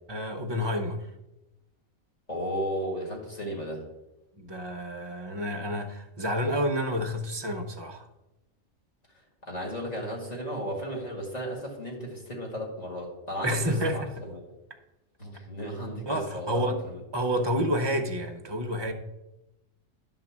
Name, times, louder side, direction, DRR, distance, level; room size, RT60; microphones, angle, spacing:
voice 1, 0.1-1.1 4.4-8.1 13.4-14.2 16.1-16.8 17.1-18.9, equal, 25° right, 0.6 m, -29 dB
voice 2, 2.3-3.9 9.4-14.4 15.2-17.0, equal, 30° left, 2.1 m, -34 dB
10.5 x 3.9 x 7.2 m
omnidirectional pair, 1.5 m